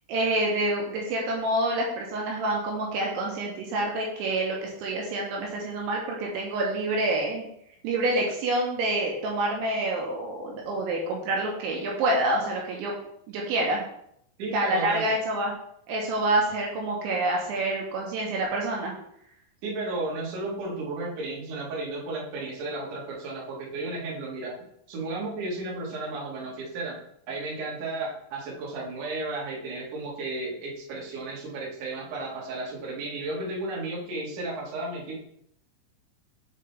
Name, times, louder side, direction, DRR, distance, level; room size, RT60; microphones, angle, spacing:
voice 1, 0.1-7.5 7.8-12.9 13.3-13.8 14.5-15.5 15.9-18.9, right 1 dB, 80° right, -1 dB, 3.0 m, -27 dB
voice 2, 14.4-15.1 19.6-24.5 24.9-35.2, right 2 dB, 65° right, -4 dB, 2.1 m, -33 dB
6.8 x 5.1 x 3.3 m, 0.73 s
omnidirectional pair, 5.8 m